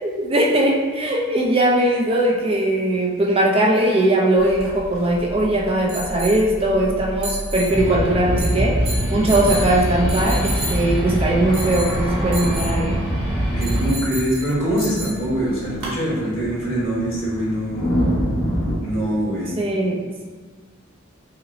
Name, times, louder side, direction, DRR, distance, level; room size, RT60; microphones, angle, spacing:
voice 1, 0.0-8.8 9.1-13.1 19.6-20.0, right 1 dB, 30° right, -1 dB, 0.4 m, -20 dB
sound 1, 4.4-16.0, right 1 dB, 75° right, 1.0 m, -33 dB
sound 2, 7.7-13.9, equal, 5° right, 0.8 m, -23 dB
sound 3, 11.0-18.8, equal, 85° left, 0.9 m, -28 dB
voice 2, 13.5-17.9 18.8-19.6, right 1 dB, 70° left, -6 dB, 1.2 m, -23 dB
5.6 x 2.0 x 2.6 m, 1.5 s
head